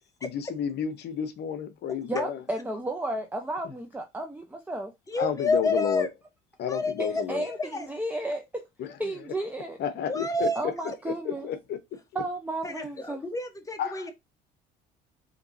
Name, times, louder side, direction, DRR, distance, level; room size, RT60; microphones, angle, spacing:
voice 1, 0.2-2.4 5.2-6.1 6.6-7.4 8.8-9.1 9.8-10.5 11.1-11.8 13.8-14.0, left 8 dB, 60° left, 0.8 m, -31 dB
voice 2, 2.1-4.9 7.3-8.6 9.0-9.8 10.6-11.5 12.1-13.2, right 2 dB, 10° right, 0.7 m, -33 dB
voice 3, 5.1-6.1 6.7-7.9 10.0-11.0 12.6-14.1, left 2 dB, 15° left, 1.1 m, -30 dB
4.3 x 2.9 x 2.7 m
supercardioid pair, 80°, 20 cm